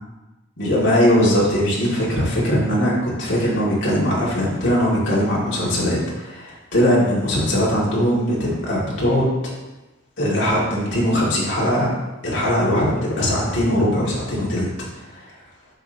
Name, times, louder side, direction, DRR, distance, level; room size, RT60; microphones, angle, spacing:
voice 1, 0.6-9.3 10.2-11.9 12.2-14.7 15.1-15.2, equal, 55° left, -6 dB, 2.2 m, -20 dB
7.9 x 6.0 x 2.8 m, 1.1 s
head